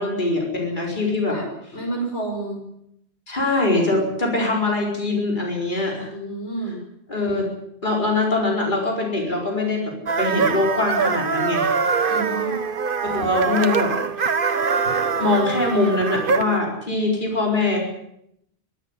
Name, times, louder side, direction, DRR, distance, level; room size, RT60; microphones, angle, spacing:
voice 1, 0.0-1.4 3.3-6.1 7.1-7.5 7.8-11.7 13.0-13.9 15.2-17.8, left 2 dB, 50° left, -1 dB, 4.7 m, -22 dB
voice 2, 1.2-2.6 6.1-6.8 12.1-12.6, right 2 dB, 90° left, 1 dB, 6.6 m, -30 dB
sound 1, 10.1-16.6, right 5 dB, 55° right, 1.3 m, -23 dB
23.0 x 13.0 x 9.8 m, 0.77 s
omnidirectional pair, 1.1 m